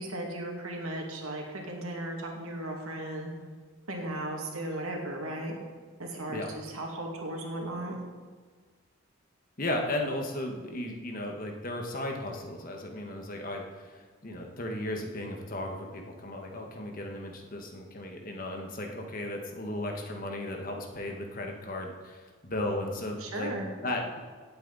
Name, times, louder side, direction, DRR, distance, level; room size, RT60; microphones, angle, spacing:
voice 1, 0.0-3.3 3.9-5.6 6.0-8.0 23.2-23.7, right 1 dB, 85° right, 1 dB, 2.4 m, -36 dB
voice 2, 9.6-23.5 23.8-24.2, left 1 dB, 40° left, 2 dB, 1.5 m, -35 dB
17.0 x 8.4 x 4.1 m, 1.5 s
head